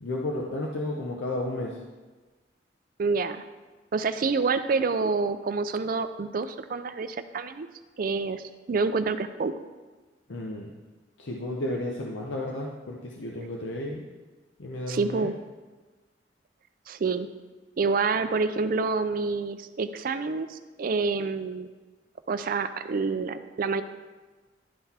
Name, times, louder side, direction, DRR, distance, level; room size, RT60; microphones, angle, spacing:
voice 1, 0.0-1.8 10.3-10.7 11.2-14.0 14.6-15.3, left 1 dB, 85° left, -1 dB, 0.7 m, -32 dB
voice 2, 3.0-3.4 3.9-7.7 8.0-9.5 14.9-15.3 16.9-17.3 17.8-21.7 22.3-23.8, right 4 dB, 50° right, 11 dB, 0.4 m, -27 dB
11.0 x 3.9 x 4.2 m, 1.3 s
head